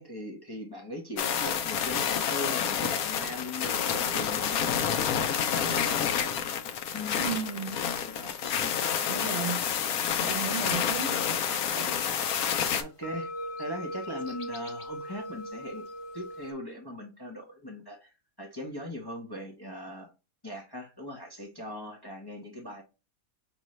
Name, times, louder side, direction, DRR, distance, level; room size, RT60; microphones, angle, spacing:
voice 1, 0.0-5.3 5.6-6.3 6.9-7.2 8.0-8.7 12.8-13.3 13.6-15.8 16.1-18.1 18.4-20.1 20.4-22.8, left 1 dB, 20° left, 0.8 m, -40 dB
sound 1, 1.2-12.8, left 8 dB, 85° left, 1.1 m, -29 dB
voice 2, 7.1-7.8 9.1-9.6 10.2-12.0, right 6 dB, 55° right, 1.1 m, -35 dB
sound 2, 10.2-16.5, equal, 45° left, 0.4 m, -40 dB
5.2 x 3.2 x 3.1 m
omnidirectional pair, 1.5 m